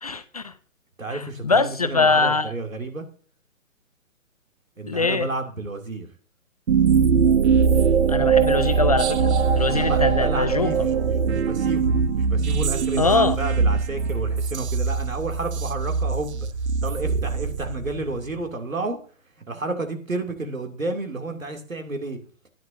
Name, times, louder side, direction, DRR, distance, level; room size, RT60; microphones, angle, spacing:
voice 1, 0.0-0.5 1.1-2.5 4.9-5.3 8.1-10.7 13.0-13.4, left 4 dB, 30° left, 0.4 m, -23 dB
voice 2, 1.0-3.0 4.8-6.1 9.7-16.5 16.8-19.0 19.5-22.2, right 2 dB, 85° right, 2.6 m, -31 dB
sound 1, 6.7-18.2, right 6 dB, 55° right, 0.8 m, -21 dB
13.5 x 10.5 x 2.6 m
figure-of-eight pair, 135°, 39 cm